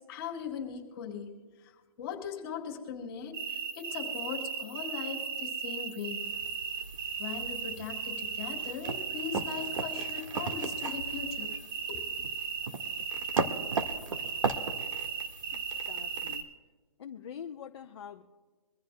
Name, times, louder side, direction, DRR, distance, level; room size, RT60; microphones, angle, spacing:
voice 1, 0.1-1.3 1.6-1.7 2.0-6.2 7.2-11.5 11.9-12.1, left 7 dB, 20° left, -1 dB, 4.2 m, -39 dB
sound 1, 3.3-16.4, right 6 dB, 40° right, 2.6 m, -36 dB
sound 2, 6.2-16.4, right 4 dB, 60° right, 1.7 m, -38 dB
voice 2, 15.9-16.5 17.0-18.2, left 8 dB, 45° left, 3 dB, 0.9 m, -44 dB
24.5 x 15.5 x 2.2 m, 1.4 s
hypercardioid pair, 160°, 19 cm